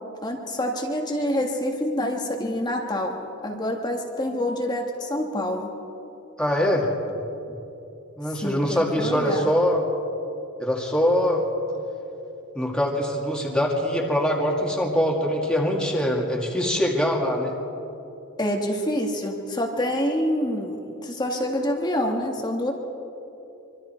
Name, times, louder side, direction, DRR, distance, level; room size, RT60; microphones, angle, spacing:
voice 1, 0.2-3.2 3.4-5.7 8.4-9.5 18.4-22.7, left 1 dB, 20° left, 1 dB, 1.7 m, -27 dB
voice 2, 6.4-6.9 7.5-7.6 8.2-9.8 10.6-11.4 12.5-17.5, equal, 5° left, -2 dB, 2.3 m, -23 dB
25.0 x 25.0 x 4.5 m, 2.9 s
head